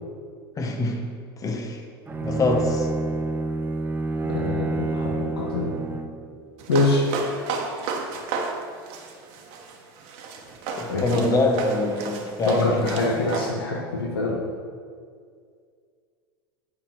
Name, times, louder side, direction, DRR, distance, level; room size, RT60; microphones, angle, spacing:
voice 1, 0.6-1.1 1.4-1.8 2.2-2.9 10.8-13.0, left 2 dB, 30° left, 3 dB, 1.3 m, -24 dB
Bowed string instrument, 2.1-6.3, right 2 dB, 15° right, 0.8 m, -28 dB
voice 2, 4.2-5.8 6.7-7.1 10.9-11.3 12.5-14.4, left 2 dB, 85° left, -1 dB, 1.2 m, -25 dB
sound 1, 6.6-13.5, right 4 dB, 55° right, 1.3 m, -33 dB
8.9 x 4.6 x 6.1 m, 2.1 s
hypercardioid pair, 90°, 12 cm